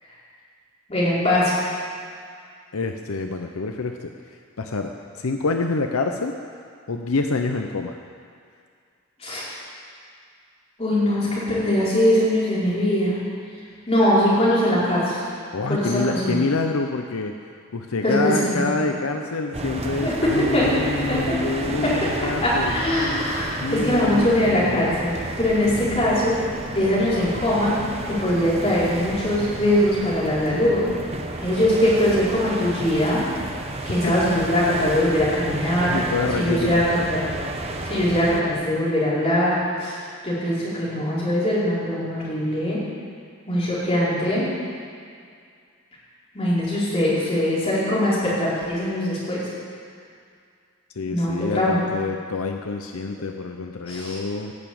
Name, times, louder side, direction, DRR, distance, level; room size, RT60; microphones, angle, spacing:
voice 1, 0.9-1.5 9.2-9.4 10.8-13.2 13.9-15.2 15.7-16.4 18.0-18.7 20.0-20.7 21.1-21.2 21.8-21.9 22.4-26.4 26.7-27.7 28.1-30.9 31.4-33.2 33.8-35.9 36.3-37.2 37.9-39.9 40.2-42.8 43.5-44.5 46.3-49.4 51.1-51.9 53.8-54.2, left 1 dB, 30° left, -9 dB, 4.9 m, -21 dB
voice 2, 2.7-4.1 4.6-4.9 5.2-6.3 6.9-8.0 15.5-17.3 17.7-22.7 23.6-24.9 34.0-34.2 35.9-36.8 51.0-54.5, left 3 dB, 80° left, 5 dB, 0.8 m, -26 dB
sound 1, 19.5-38.4, right 2 dB, 30° right, 1.1 m, -32 dB
17.0 x 7.1 x 8.7 m, 2.2 s
head